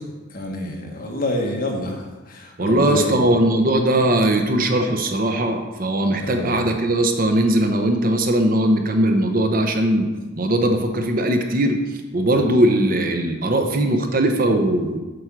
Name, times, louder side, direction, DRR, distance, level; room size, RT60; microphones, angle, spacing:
voice 1, 0.3-3.3 6.2-6.7, left 1 dB, 45° left, 1 dB, 1.4 m, -27 dB
voice 2, 2.6-10.1 10.4-11.8 12.1-15.0, right 1 dB, 45° right, 5 dB, 0.9 m, -19 dB
7.9 x 5.3 x 6.1 m, 1.2 s
head